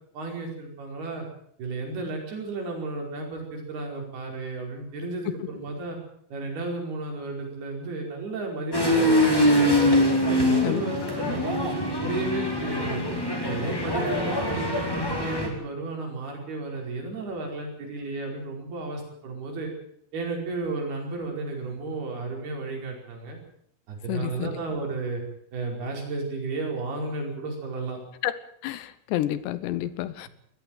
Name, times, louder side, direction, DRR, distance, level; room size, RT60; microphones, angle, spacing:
voice 1, 0.1-1.3 1.6-6.0 6.3-9.9 10.2-13.0 13.4-19.7 20.1-23.4 23.9-25.2 25.5-28.0, right 3 dB, 55° right, 1 dB, 6.9 m, -33 dB
sound 1, 8.7-15.5, left 1 dB, 5° left, 3.9 m, -23 dB
voice 2, 24.1-24.5 28.2-28.3 28.6-30.3, left 14 dB, 75° left, 15 dB, 2.8 m, -29 dB
20.0 x 14.5 x 9.1 m, 0.66 s
omnidirectional pair, 5.7 m